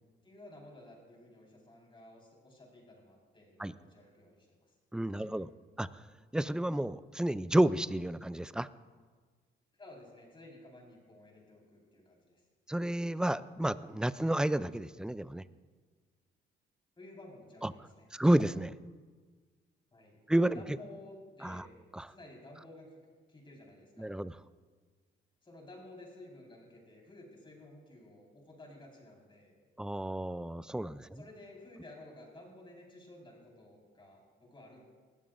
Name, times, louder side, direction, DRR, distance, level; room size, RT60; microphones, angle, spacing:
voice 1, 0.2-4.7 5.1-5.3 9.8-12.4 17.0-18.1 19.9-20.2 20.5-21.7 22.1-22.9 23.3-24.2 25.4-29.5 31.1-34.8, left 1 dB, 25° left, -1 dB, 4.5 m, -53 dB
voice 2, 4.9-5.5 5.8-6.0 6.3-8.7 12.7-15.4 17.6-17.7 18.1-18.7 20.3-20.8 21.4-21.6 21.9-22.1 24.0-24.4 29.8-31.2, right 1 dB, 5° right, 16 dB, 0.4 m, -31 dB
20.0 x 15.0 x 2.6 m, 1.5 s
cardioid pair, 90°, 20 cm